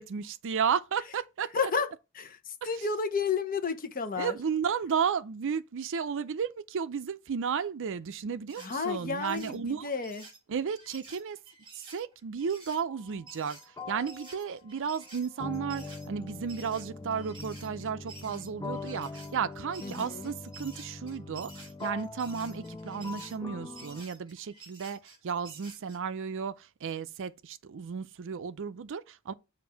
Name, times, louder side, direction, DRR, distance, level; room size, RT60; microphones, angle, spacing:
voice 1, 0.0-1.5 4.2-9.9 10.5-11.4 11.7-13.6 13.9-29.3, right 6 dB, 60° right, 0.5 m, -33 dB
voice 2, 1.5-4.4 8.6-10.3 19.8-20.3, left 5 dB, 40° left, 0.8 m, -32 dB
sound 1, 8.5-26.0, right 3 dB, 20° right, 2.1 m, -51 dB
sound 2, 12.9-13.1 13.8-24.0, left 3 dB, 15° left, 0.3 m, -42 dB
7.4 x 2.6 x 5.6 m
head